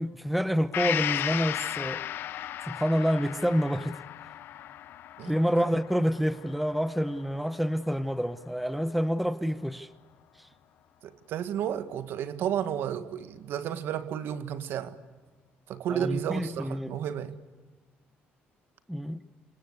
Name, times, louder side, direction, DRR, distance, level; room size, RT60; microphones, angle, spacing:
voice 1, 0.0-2.0 2.7-4.0 5.3-9.9 10.4-10.5 15.9-17.0 18.9-19.2, equal, ahead, 0.9 m, -28 dB
Gong, 0.7-8.4 8.8-8.9, left 12 dB, 65° left, 0.8 m, -36 dB
voice 2, 5.2-5.7 11.0-15.0 15.7-17.4, right 9 dB, 70° right, 1.7 m, -32 dB
27.5 x 26.0 x 8.2 m
cardioid pair, 155°, 4 cm